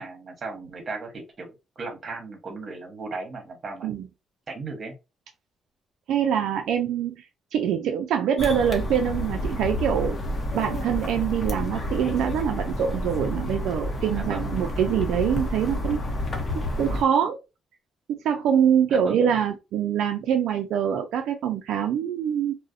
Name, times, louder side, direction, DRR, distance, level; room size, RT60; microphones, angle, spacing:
voice 1, 0.0-3.9 4.5-5.0 14.1-14.5 18.9-19.2, right 3 dB, 45° right, 4 dB, 0.9 m, -36 dB
voice 2, 6.1-7.2 7.5-10.2 10.5-16.0 16.5-17.4 18.2-22.5, right 8 dB, 80° right, 4 dB, 0.3 m, -24 dB
sound 1, 8.4-17.0, left 1 dB, 40° left, 0.7 m, -30 dB
2.3 x 2.0 x 2.5 m, 0.26 s
cardioid pair, 90°, 0 cm